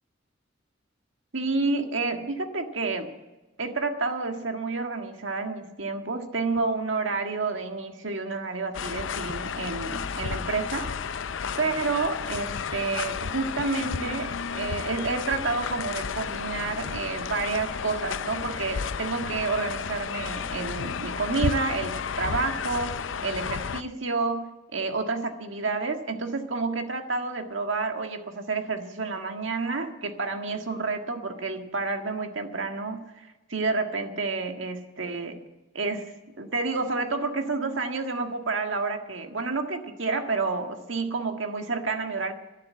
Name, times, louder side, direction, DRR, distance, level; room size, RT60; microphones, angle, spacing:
voice 1, 1.3-3.1 3.6-10.9 11.6-35.4 35.7-42.3, right 3 dB, 80° right, 5 dB, 1.7 m, -29 dB
sound 1, 8.7-23.8, left 6 dB, 80° left, 0.6 m, -32 dB
12.0 x 11.5 x 8.8 m, 1.1 s
head